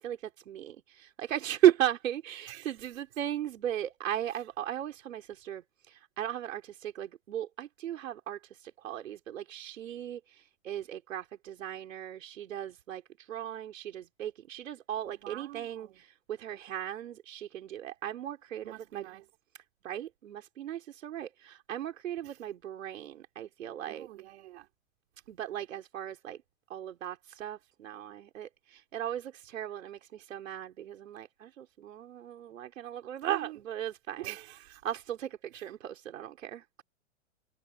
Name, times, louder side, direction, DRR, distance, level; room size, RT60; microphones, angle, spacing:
voice 1, 0.0-13.0 13.3-19.1 19.8-24.1 25.3-26.4 26.7-34.4 34.8-36.8, right 11 dB, 80° right, 4.5 m, -35 dB
voice 2, 15.1-16.0 18.6-19.3 22.2-22.4 23.9-24.7 33.2-33.6 34.2-34.8 35.5-35.7, right 16 dB, 55° right, 6.7 m, -45 dB
hypercardioid pair, 155°, 39 cm